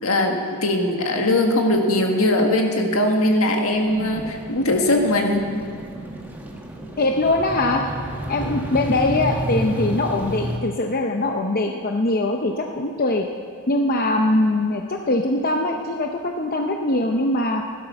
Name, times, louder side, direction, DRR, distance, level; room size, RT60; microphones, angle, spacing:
voice 1, 0.0-5.5, left 1 dB, 70° left, 3 dB, 1.7 m, -20 dB
sound 1, 3.7-10.6, right 1 dB, 10° right, 1.3 m, -30 dB
voice 2, 7.0-7.8 8.3-13.3 13.7-17.6, left 2 dB, 40° left, 3 dB, 0.7 m, -22 dB
16.0 x 12.0 x 5.8 m, 2.4 s
head